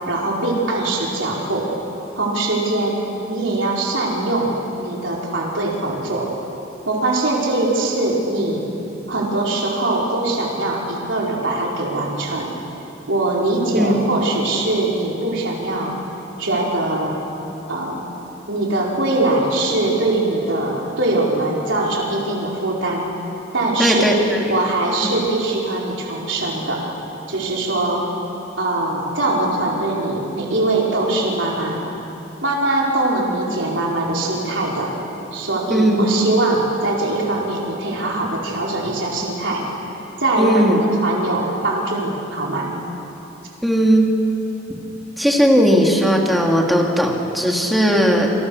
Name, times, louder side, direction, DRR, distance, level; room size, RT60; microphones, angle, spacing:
voice 1, 0.1-1.7 2.1-3.0 3.3-6.3 6.9-8.7 9.1-12.5 13.1-15.9 16.4-17.2 17.7-18.1 18.5-23.0 23.5-24.1 24.5-26.8 27.3-28.0 28.6-31.8 32.4-34.9 35.3-39.6 40.2-42.7, right 2 dB, 70° right, -3 dB, 5.0 m, -22 dB
voice 2, 23.8-24.4 35.7-36.1 40.4-40.8 43.6-44.1 45.2-48.3, equal, ahead, -1 dB, 3.1 m, -17 dB
28.5 x 27.5 x 6.7 m, 3.0 s
head